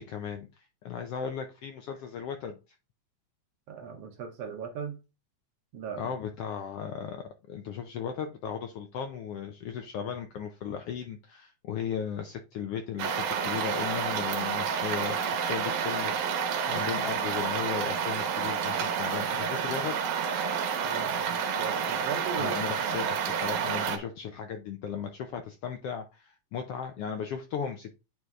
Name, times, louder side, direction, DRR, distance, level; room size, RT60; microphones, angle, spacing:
voice 1, 0.0-2.6 6.0-20.0 22.4-27.9, left 7 dB, 75° left, 1.4 m, -36 dB
voice 2, 3.7-5.0 5.7-6.1 16.7-17.0 20.8-22.6, right 6 dB, 70° right, 1.8 m, -38 dB
sound 1, 13.0-24.0, right 7 dB, 85° right, 2.5 m, -29 dB
9.4 x 3.3 x 3.6 m
omnidirectional pair, 3.4 m